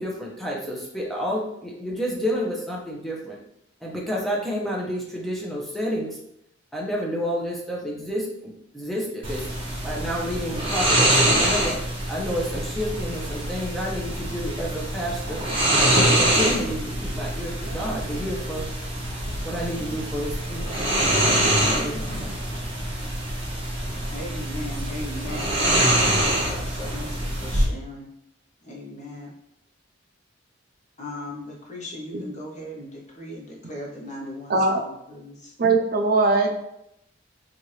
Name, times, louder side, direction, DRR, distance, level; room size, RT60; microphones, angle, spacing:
voice 1, 0.0-3.4 3.8-6.2 6.7-9.5 9.8-11.8 12.1-15.4 15.9-18.7 19.4-20.8 21.6-22.4, equal, ahead, -3 dB, 0.8 m, -30 dB
sound 1, 9.2-27.6, right 1 dB, 30° right, 1.0 m, -25 dB
voice 2, 24.1-28.1 28.6-29.3 31.0-35.5, left 1 dB, 40° left, -2 dB, 0.9 m, -38 dB
voice 3, 34.5-34.8 35.6-36.5, right 3 dB, 50° right, 3 dB, 0.5 m, -20 dB
4.3 x 2.5 x 3.2 m, 0.78 s
head